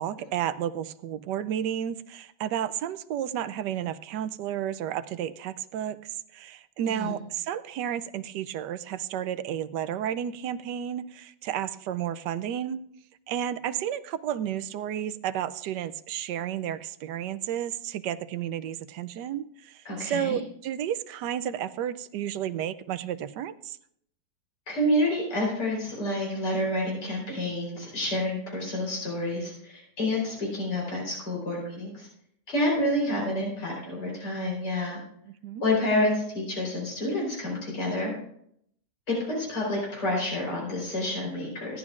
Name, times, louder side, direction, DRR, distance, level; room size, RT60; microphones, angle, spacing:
voice 1, 0.0-12.8 13.3-23.8 35.4-35.6, right 10 dB, 80° right, 12 dB, 1.2 m, -32 dB
voice 2, 6.8-7.1 19.8-20.4 24.7-32.1 32.5-35.0 35.6-38.1 39.1-41.8, left 1 dB, 70° left, -3 dB, 4.7 m, -28 dB
16.5 x 11.0 x 2.4 m, 0.70 s
omnidirectional pair, 1.9 m